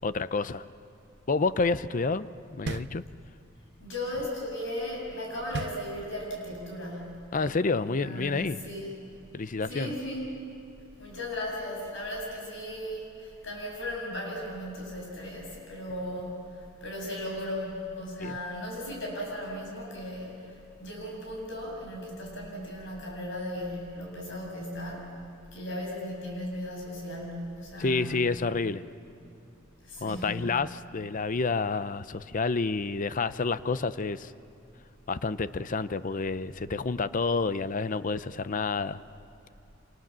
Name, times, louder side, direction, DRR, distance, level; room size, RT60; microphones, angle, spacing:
voice 1, 0.0-0.6 1.3-3.0 7.3-8.6 9.3-9.9 18.2-18.4 27.8-28.8 30.0-34.3 35.1-39.0, left 4 dB, 40° left, 14 dB, 0.6 m, -29 dB
sound 1, 2.7-3.6 5.5-6.5, right 3 dB, 60° right, 0.6 m, -37 dB
voice 2, 3.8-7.3 7.8-8.9 9.4-10.4 11.0-25.2 25.5-28.2 29.8-30.5, left 1 dB, 70° left, -1 dB, 7.8 m, -36 dB
28.5 x 26.5 x 7.5 m, 2.5 s
head